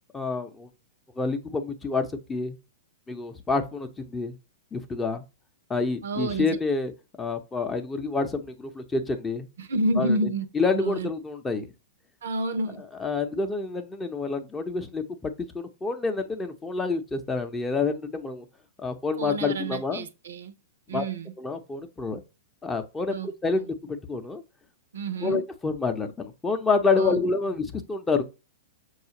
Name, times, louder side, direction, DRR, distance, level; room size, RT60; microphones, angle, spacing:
voice 1, 0.1-0.7 1.2-2.6 3.1-4.4 4.7-5.2 5.7-6.9 7.2-9.5 10.0-10.2 10.5-11.7 13.0-18.5 18.8-20.1 20.9-21.0 21.4-22.2 22.6-23.2 23.4-24.4 25.2-28.2, left 4 dB, 15° left, 0.6 m, -28 dB
voice 2, 6.0-6.6 9.6-10.5 10.7-11.1 12.2-12.8 19.2-20.5 20.9-21.3 23.1-23.7 24.9-25.4 26.9-27.2, right 2 dB, 85° right, 0.6 m, -29 dB
6.2 x 2.4 x 2.8 m
hypercardioid pair, 130°, 0 cm